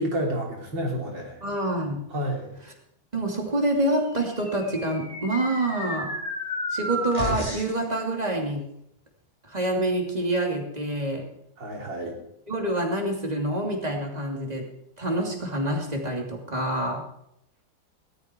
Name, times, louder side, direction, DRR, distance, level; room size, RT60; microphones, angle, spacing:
voice 1, 0.0-1.4 2.1-2.5 11.6-12.2, right 1 dB, 75° right, 0 dB, 3.9 m, -29 dB
voice 2, 1.4-2.1 3.1-6.1 6.7-8.7 9.5-11.3 12.5-17.1, right 1 dB, 20° right, 1 dB, 2.8 m, -27 dB
sound 1, 4.2-7.8, equal, 15° left, 2.6 m, -32 dB
18.5 x 13.0 x 4.5 m, 0.76 s
omnidirectional pair, 2.0 m